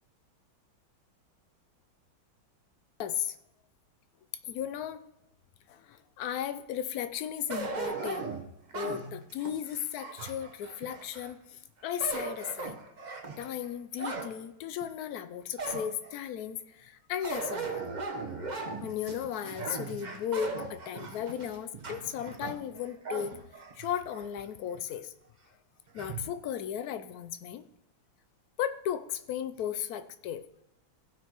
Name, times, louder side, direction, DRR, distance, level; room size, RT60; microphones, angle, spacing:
voice 1, 3.0-3.3 4.5-5.0 5.7-8.3 8.7-12.7 13.4-17.8 18.8-23.3 23.7-25.1 25.9-27.6 28.6-30.4, left 9 dB, 80° left, 12 dB, 0.8 m, -35 dB
sound 1, 7.5-11.3 11.8-14.3 14.8-14.9 15.6-16.2 17.2-24.3 24.7-24.8 26.0-26.3, right 4 dB, 35° right, 0.7 m, -38 dB
15.5 x 6.0 x 3.0 m, 0.85 s
omnidirectional pair, 2.2 m